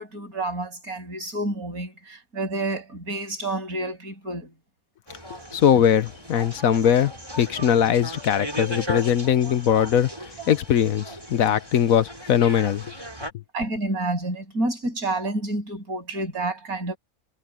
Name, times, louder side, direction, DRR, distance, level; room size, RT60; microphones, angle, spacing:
voice 1, 0.0-4.5 13.5-17.0, right 2 dB, 80° right, 8.5 m, -29 dB
sound 1, 5.1-13.3, equal, 20° right, 4.6 m, -37 dB
voice 2, 5.5-10.1 10.5-12.8, left 9 dB, 70° left, 1.2 m, -21 dB
omnidirectional pair, 1.5 m